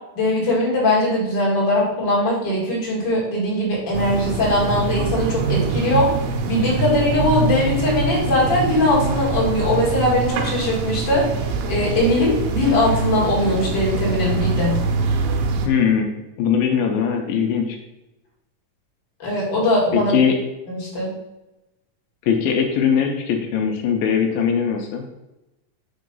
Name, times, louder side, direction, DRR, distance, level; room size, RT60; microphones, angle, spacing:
voice 1, 0.2-6.1 6.5-11.3 11.7-14.8 19.2-20.2 20.7-21.1, left 1 dB, 35° left, -5 dB, 2.2 m, -20 dB
sound 1, 3.9-15.7, right 4 dB, 85° right, 2.6 m, -24 dB
voice 2, 15.7-16.1 16.4-17.8 19.9-20.3 22.3-25.0, left 7 dB, 85° left, 3 dB, 2.5 m, -20 dB
5.5 x 3.9 x 5.3 m, 0.98 s
omnidirectional pair, 4.2 m